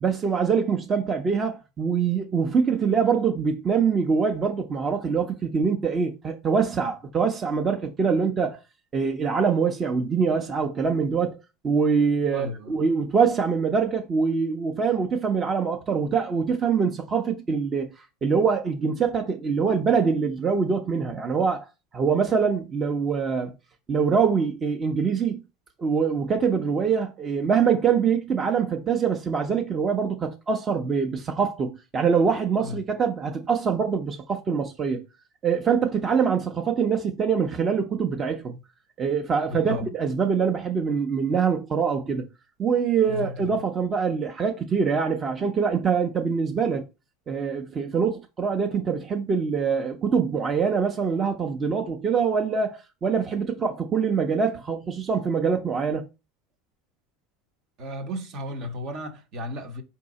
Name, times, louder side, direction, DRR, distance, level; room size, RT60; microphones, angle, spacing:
voice 1, 0.0-8.6 8.9-11.4 11.6-17.9 18.2-21.7 21.9-23.5 23.9-25.4 25.8-35.0 35.4-38.6 39.0-42.2 42.6-46.8 47.3-56.1, right 6 dB, 30° right, 0.7 m, -24 dB
voice 2, 12.3-12.8 32.6-32.9 39.5-39.9 43.1-43.6 57.8-59.8, left 1 dB, 55° right, 1.0 m, -34 dB
4.5 x 2.8 x 4.1 m
hypercardioid pair, 100°, 0 cm